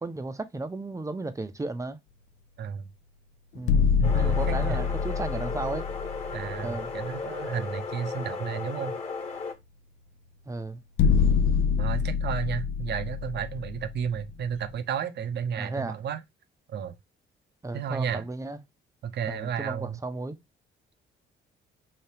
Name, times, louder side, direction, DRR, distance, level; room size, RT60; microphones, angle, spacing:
voice 1, 0.0-2.0 3.5-5.9 6.6-6.9 10.5-10.8 15.5-16.0 17.6-18.6 19.3-20.4, right 3 dB, 15° right, 0.6 m, -34 dB
sound 1, 3.6-7.2 7.5-7.6 11.0-14.6, left 6 dB, 75° left, 0.4 m, -26 dB
sound 2, 4.0-9.5, left 4 dB, 30° left, 1.3 m, -35 dB
voice 2, 4.0-4.8 6.3-9.0 11.8-16.2 16.7-16.9 17.7-18.2 19.0-20.0, right 7 dB, 60° right, 0.6 m, -32 dB
3.4 x 2.8 x 2.7 m
cardioid pair, 90°, 20 cm